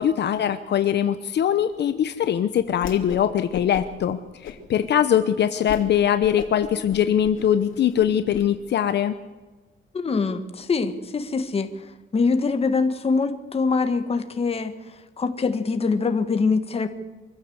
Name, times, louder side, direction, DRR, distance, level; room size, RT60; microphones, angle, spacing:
voice 1, 0.0-9.1, left 9 dB, 60° left, 10 dB, 0.9 m, -22 dB
Whoosh swoosh swish, 2.7-3.3 3.5-4.0 4.4-4.9 5.3-5.4 5.7-5.9 6.2-8.4, left 9 dB, 80° left, 2.6 m, -36 dB
voice 2, 9.9-11.9 12.1-14.8 15.2-16.9, left 4 dB, 30° left, 8 dB, 1.7 m, -23 dB
24.0 x 15.0 x 8.1 m, 1.2 s
cardioid pair, 145°, 20 cm